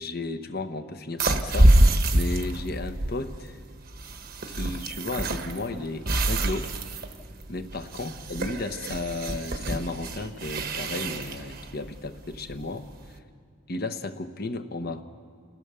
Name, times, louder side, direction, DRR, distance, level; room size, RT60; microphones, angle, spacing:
voice 1, 0.0-3.6 4.5-6.7 7.5-12.9 13.7-15.0, left 2 dB, 45° left, 8 dB, 1.0 m, -34 dB
sound 1, 1.2-13.1, right 1 dB, 45° right, 1.1 m, -26 dB
29.0 x 16.5 x 6.9 m, 2.2 s
head